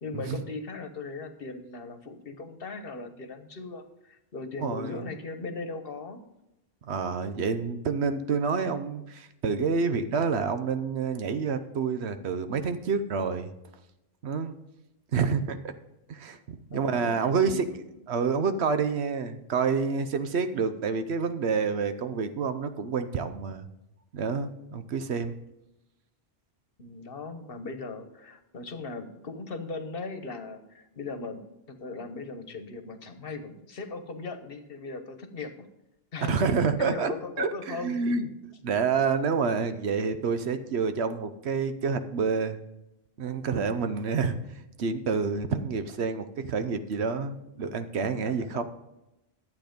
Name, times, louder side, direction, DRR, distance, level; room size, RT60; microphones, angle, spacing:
voice 1, 0.0-6.2 16.7-17.8 26.8-31.4 31.7-35.7 36.1-38.0 48.2-48.6, left 3 dB, 60° left, 8 dB, 1.2 m, -38 dB
voice 2, 4.6-5.0 6.9-13.5 14.2-14.6 15.1-15.7 16.1-17.7 18.1-23.7 24.1-25.4 36.3-38.3 38.6-42.6 43.2-44.4 44.8-48.6, right 5 dB, 80° right, 10 dB, 1.1 m, -28 dB
11.5 x 8.3 x 5.2 m, 0.92 s
omnidirectional pair, 1.1 m